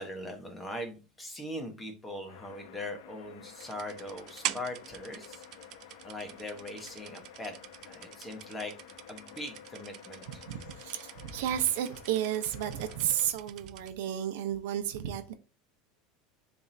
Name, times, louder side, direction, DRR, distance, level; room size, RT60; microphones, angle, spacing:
voice 1, 0.0-5.7 6.0-8.7 9.1-10.5, left 1 dB, 10° left, 1.2 m, -41 dB
sound 1, 2.3-13.3, left 9 dB, 75° left, 0.9 m, -51 dB
sound 2, 3.6-13.9, right 14 dB, 40° right, 0.4 m, -45 dB
voice 2, 10.5-15.3, right 10 dB, 75° right, 0.8 m, -32 dB
10.0 x 3.5 x 2.7 m
supercardioid pair, 165°, 0 cm